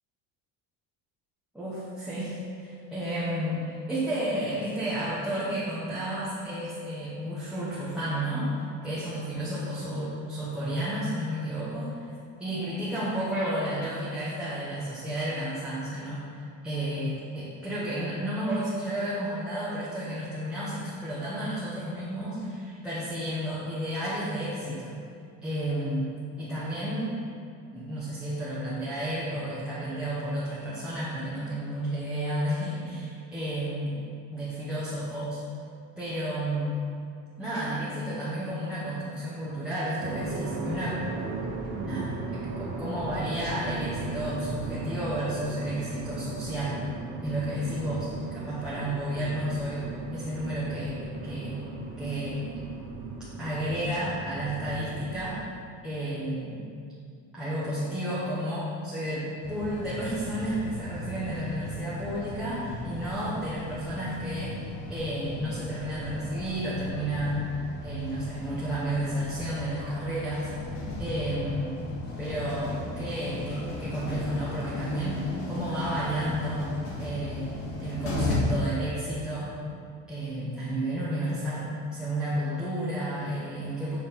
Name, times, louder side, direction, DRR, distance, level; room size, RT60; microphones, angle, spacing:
voice 1, 1.5-12.0 12.4-25.0 25.4-26.1 26.4-27.1 27.7-33.9 34.3-35.4 36.0-36.7 37.4-41.0 41.8-46.8 47.2-51.6 52.0-52.4 53.4-55.4 55.8-56.6 57.3-64.6 64.9-67.5 67.8-70.5 71.0-71.8 72.2-76.7 77.0-77.5 77.8-79.5 80.1-84.0, right 1 dB, 5° right, -11 dB, 1.0 m, -32 dB
sound 1, 40.0-55.3, right 3 dB, 80° right, 1.3 m, -37 dB
sound 2, 59.4-78.3, left 1 dB, 50° left, 1.6 m, -37 dB
7.4 x 4.2 x 5.6 m, 2.4 s
cardioid pair, 180°, 33 cm